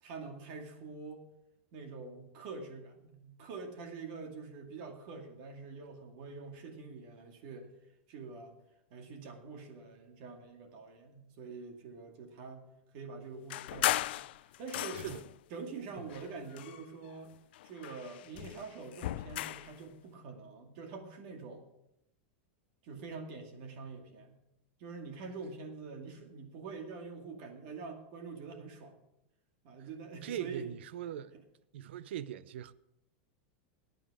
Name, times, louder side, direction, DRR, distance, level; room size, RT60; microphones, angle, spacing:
voice 1, 0.0-1.2 1.7-7.7 8.1-8.6 8.9-12.7 12.9-14.2 14.6-15.0 15.5-17.3 17.6-21.6 22.8-24.4 24.8-28.9 29.6-30.7, right 4 dB, 45° right, 2.2 m, -45 dB
sound 1, 13.5-15.4 16.1-17.2 17.5-19.8, left 15 dB, 60° left, 0.4 m, -36 dB
voice 2, 30.2-31.3 31.7-32.7, right 10 dB, 75° right, 0.6 m, -41 dB
15.5 x 9.3 x 4.9 m
supercardioid pair, 170°, 6 cm